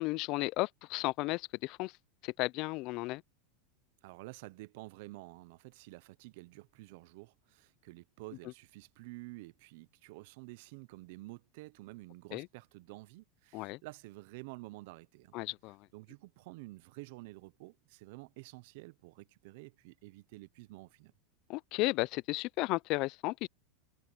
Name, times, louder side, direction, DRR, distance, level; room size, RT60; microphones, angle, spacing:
voice 1, 0.0-1.9 2.2-3.2 12.3-12.5 13.5-13.8 15.3-15.8 21.5-23.5, left 22 dB, 50° left, 0.3 m, -34 dB
voice 2, 4.0-15.3 15.9-21.1, right 22 dB, 65° right, 0.6 m, -50 dB
supercardioid pair, 140°, 0 cm